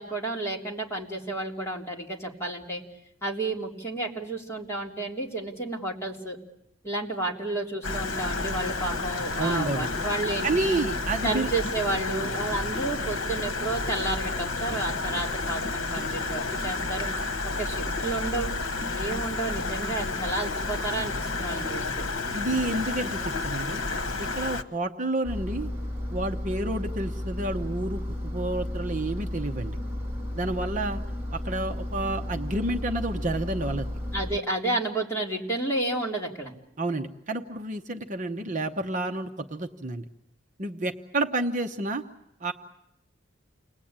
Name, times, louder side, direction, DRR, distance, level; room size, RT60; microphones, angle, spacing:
voice 1, 0.0-2.8 3.2-6.4 6.8-10.8 11.2-17.1 17.4-18.5 18.9-22.0 34.1-36.5, right 2 dB, 15° left, -2 dB, 3.3 m, -31 dB
Stream, 7.8-24.6, left 3 dB, 80° left, 1.3 m, -31 dB
voice 2, 9.4-9.9 10.4-11.5 22.3-23.8 24.2-25.7 26.1-29.8 30.3-31.0 31.3-33.9 36.8-40.0 40.6-42.0 42.4-42.5, right 2 dB, 40° right, 4 dB, 0.9 m, -30 dB
Engine, 25.2-34.4, left 1 dB, 10° right, 2.3 m, -33 dB
29.0 x 20.5 x 8.9 m, 0.87 s
head